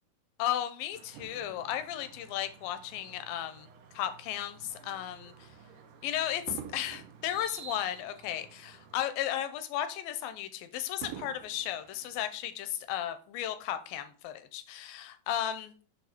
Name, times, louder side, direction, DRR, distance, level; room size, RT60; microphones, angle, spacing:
voice 1, 0.4-3.7 3.9-5.3 6.0-15.7, left 11 dB, 80° left, 10 dB, 2.3 m, -35 dB
sound 1, 0.9-9.0, right 5 dB, 70° right, 2.2 m, -53 dB
Fireworks, 1.1-3.7 4.4-4.6 6.5-9.0 9.4-9.5 11.0-12.9 13.6-13.7, right 10 dB, 90° right, 1.8 m, -49 dB
8.0 x 2.7 x 5.9 m, 0.41 s
omnidirectional pair, 4.3 m